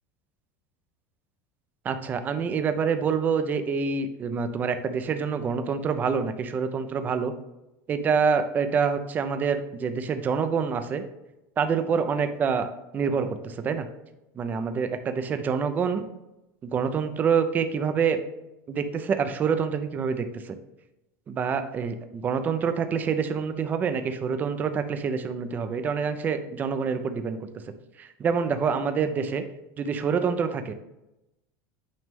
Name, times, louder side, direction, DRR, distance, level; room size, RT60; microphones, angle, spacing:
voice 1, 1.8-7.3 7.9-11.0 11.6-12.7 12.9-13.9 14.4-16.0 16.6-18.2 18.7-20.6 21.3-27.4 28.0-29.4 29.8-30.7, right 6 dB, 20° right, 9 dB, 0.5 m, -26 dB
8.9 x 3.1 x 3.6 m, 0.92 s
supercardioid pair, 165°, 9 cm